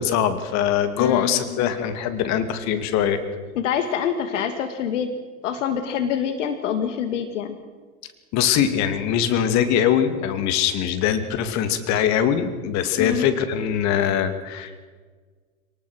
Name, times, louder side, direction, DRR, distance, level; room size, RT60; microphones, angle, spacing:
voice 1, 0.0-3.2 8.3-14.8, left 9 dB, 40° left, 10 dB, 2.7 m, -22 dB
voice 2, 1.0-1.7 3.6-5.1 5.4-7.6 13.0-13.2, left 8 dB, 55° left, 8 dB, 2.3 m, -26 dB
27.5 x 19.5 x 6.4 m, 1.4 s
figure-of-eight pair, 95°, 43 cm